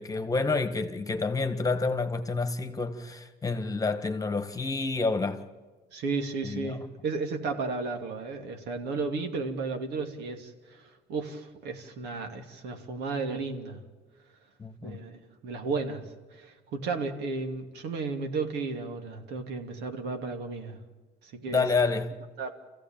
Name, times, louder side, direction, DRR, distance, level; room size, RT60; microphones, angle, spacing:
voice 1, 0.0-5.4 6.4-6.8 14.6-15.0 21.5-22.2, left 3 dB, 20° left, 1.7 m, -29 dB
voice 2, 5.9-13.8 14.8-15.1 15.4-20.8 21.2-21.6 22.4-22.5, right 4 dB, 80° right, 2.7 m, -34 dB
27.0 x 15.5 x 9.0 m
cardioid pair, 110°, 17 cm